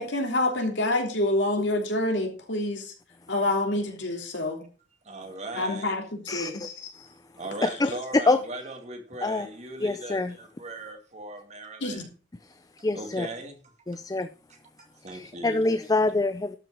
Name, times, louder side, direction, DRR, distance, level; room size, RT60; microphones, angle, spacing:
voice 1, 0.0-2.9 3.3-4.6 5.6-6.7 11.8-12.1, left 1 dB, 70° left, 3 dB, 3.2 m, -27 dB
voice 2, 5.0-5.9 7.4-12.1 12.9-13.7 14.5-15.6, right 2 dB, 40° right, 4 dB, 2.4 m, -39 dB
voice 3, 6.3-6.9 7.6-8.4 9.2-9.5 9.8-10.4 12.8-13.3 13.9-14.3 15.1-16.6, left 2 dB, 20° left, 10 dB, 0.5 m, -26 dB
12.5 x 6.1 x 6.2 m, 0.37 s
head